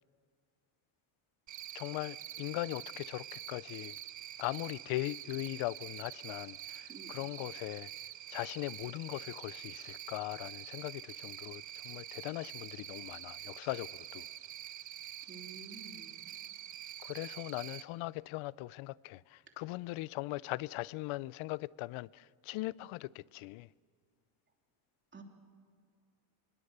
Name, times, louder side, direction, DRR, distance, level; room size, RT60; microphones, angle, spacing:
Cricket, 1.5-17.8, right 11 dB, 40° right, 0.6 m, -46 dB
voice 1, 1.7-4.0 4.4-7.9 8.3-14.3 17.0-23.7, left 19 dB, 75° left, 0.6 m, -40 dB
voice 2, 15.3-16.1 25.1-25.2, right 3 dB, 25° right, 3.1 m, -50 dB
25.5 x 21.5 x 6.8 m
cardioid pair, 140°, 49 cm